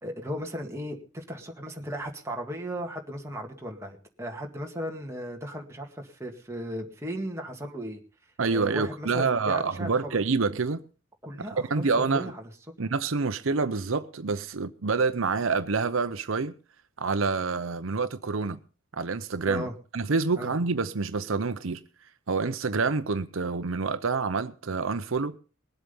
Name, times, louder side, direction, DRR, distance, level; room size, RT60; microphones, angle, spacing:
voice 1, 0.0-8.0 8.5-10.2 11.2-12.4 19.5-19.7 20.4-20.5, equal, 15° right, 1.9 m, -36 dB
voice 2, 8.4-10.8 11.7-12.3 12.8-16.5 17.0-18.6 18.9-19.7 19.9-21.8 22.3-25.3, right 4 dB, 75° right, 0.7 m, -27 dB
20.5 x 8.0 x 5.5 m
head